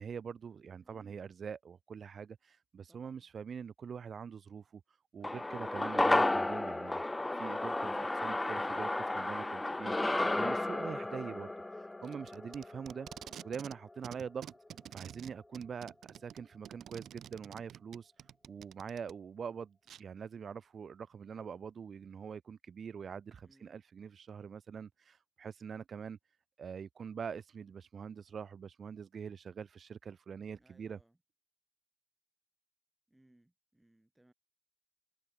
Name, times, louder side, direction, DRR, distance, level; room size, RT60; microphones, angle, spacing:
voice 1, 0.0-7.0 7.3-13.1 13.4-14.5 14.9-26.2 26.6-31.0, right 6 dB, 50° right, 0.4 m, -44 dB
voice 2, 0.8-1.3 2.9-3.3 23.4-23.8 30.5-31.2 33.1-34.3, right 1 dB, 10° right, 4.0 m, -67 dB
sound 1, 5.2-13.7 14.0-14.1, left 2 dB, 15° left, 0.4 m, -33 dB
Packing tape duct tape, 12.0-13.8 14.0-19.1 19.9-20.0, right 10 dB, 70° right, 0.8 m, -49 dB
cardioid pair, 90°, 0 cm